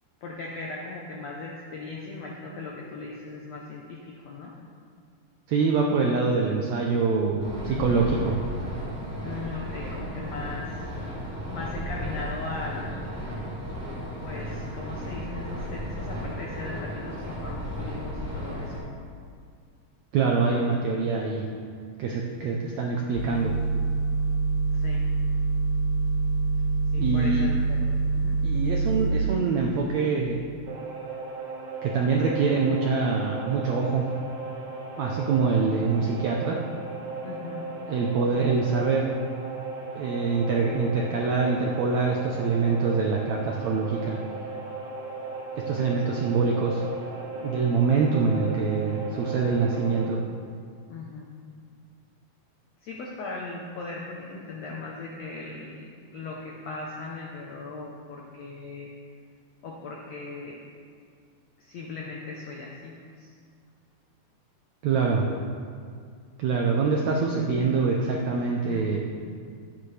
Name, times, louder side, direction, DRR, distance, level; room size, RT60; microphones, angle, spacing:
voice 1, 0.2-4.5 7.7-8.2 9.2-11.2 11.5-13.3 14.2-19.0 24.7-25.1 26.9-28.4 37.2-37.7 50.9-51.3 52.8-58.9 59.6-60.6 61.6-63.3 68.7-69.0, left 3 dB, 75° left, -2 dB, 1.5 m, -38 dB
voice 2, 5.5-8.4 20.1-21.5 22.0-23.5 27.0-27.5 28.4-30.4 31.8-34.0 35.0-36.6 37.9-39.1 39.9-44.2 45.7-46.8 47.4-50.2 64.8-65.3 66.4-69.0, right 4 dB, 85° right, -1 dB, 1.5 m, -25 dB
sound 1, 7.4-18.8, equal, 25° right, 3.1 m, -34 dB
sound 2, 23.1-29.1, right 4 dB, 45° left, 1.2 m, -25 dB
sound 3, 30.7-50.0, right 3 dB, 55° right, 1.2 m, -36 dB
13.0 x 9.4 x 3.3 m, 2.2 s
omnidirectional pair, 4.2 m